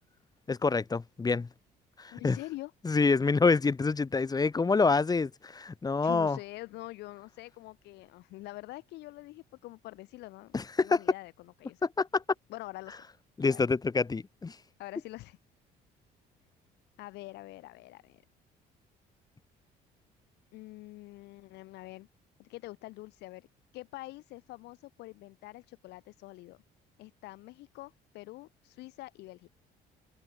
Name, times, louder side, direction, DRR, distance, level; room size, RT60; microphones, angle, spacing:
voice 1, 0.5-1.5 2.0-2.4 2.8-6.4 10.5-11.0 11.8-12.2 13.4-14.6, left 4 dB, 20° left, 2.4 m, -27 dB
voice 2, 2.1-2.7 6.0-10.6 10.8-11.9 12.5-13.1 13.5-13.6 14.8-15.4 17.0-18.2 20.5-22.1 22.4-23.5 23.7-26.6 27.0-29.5, left 19 dB, 85° left, 6.0 m, -45 dB
cardioid pair, 110°, 17 cm